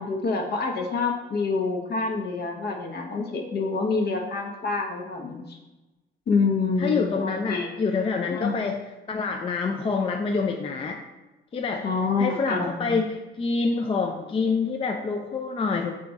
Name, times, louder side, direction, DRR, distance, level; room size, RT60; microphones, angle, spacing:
voice 1, 0.0-5.6 6.3-7.7 8.3-8.6 11.8-12.9, left 4 dB, 55° left, 3 dB, 0.8 m, -27 dB
voice 2, 6.8-8.8 9.1-11.0 11.5-11.8 12.2-16.0, left 4 dB, 30° left, 3 dB, 0.4 m, -26 dB
3.7 x 3.6 x 3.9 m, 1.1 s
cardioid pair, 90°, 20 cm